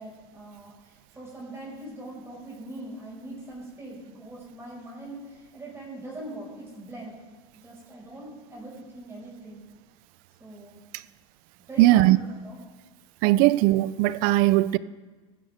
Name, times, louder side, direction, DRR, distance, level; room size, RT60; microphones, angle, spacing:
voice 1, 0.0-7.1 7.6-9.7 10.4-10.8 11.7-12.6, right 1 dB, 15° right, 5.3 m, -42 dB
voice 2, 11.8-12.2 13.2-14.8, right 16 dB, 60° right, 0.5 m, -19 dB
18.5 x 14.5 x 3.6 m
hypercardioid pair, 100°, 17 cm